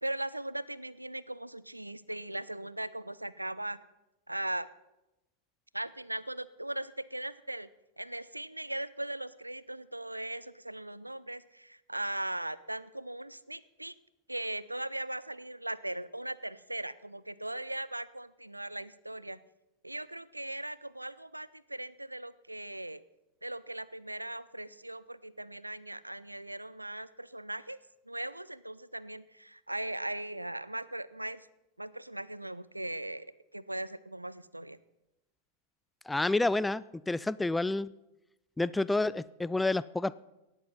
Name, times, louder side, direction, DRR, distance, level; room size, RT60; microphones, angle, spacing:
voice 1, 0.0-3.8 4.3-4.7 5.7-7.7 8.0-13.9 14.3-19.4 19.8-23.0 23.4-27.8 28.1-31.5 31.8-33.3 33.5-34.8, right 1 dB, 85° right, 18 dB, 0.4 m, -39 dB
voice 2, 36.1-37.9 38.6-40.1, left 2 dB, 5° left, 18 dB, 0.3 m, -29 dB
17.5 x 8.3 x 5.6 m, 0.96 s
figure-of-eight pair, 90°, 0 cm